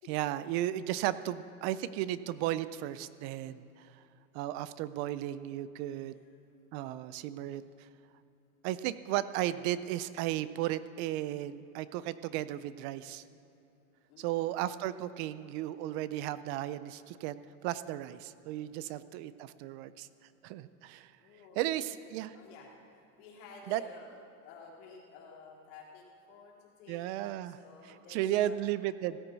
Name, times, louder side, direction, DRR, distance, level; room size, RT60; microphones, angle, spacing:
voice 1, 0.1-3.9 4.3-6.2 6.7-7.9 8.6-13.2 14.2-20.1 20.4-21.1 21.6-22.3 23.7-23.8 26.9-27.6 28.1-29.2, right 13 dB, 55° right, 15 dB, 0.5 m, -34 dB
voice 2, 14.1-14.5 18.7-19.1 21.2-22.1 22.3-24.2 24.4-28.6, left 4 dB, 70° left, -3 dB, 3.1 m, -53 dB
16.0 x 9.1 x 4.0 m, 2.8 s
supercardioid pair, 150°, 39 cm